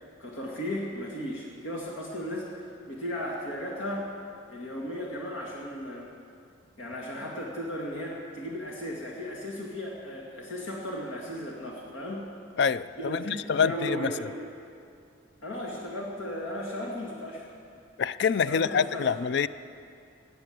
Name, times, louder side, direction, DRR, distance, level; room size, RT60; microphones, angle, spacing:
voice 1, 0.2-4.1 4.5-6.1 6.8-12.2 13.0-14.3 15.4-17.5 18.5-19.1, equal, 80° left, -2 dB, 2.1 m, -35 dB
voice 2, 12.6-14.1 18.0-19.5, left 6 dB, 55° left, 15 dB, 0.4 m, -26 dB
16.5 x 9.7 x 7.9 m, 2.4 s
head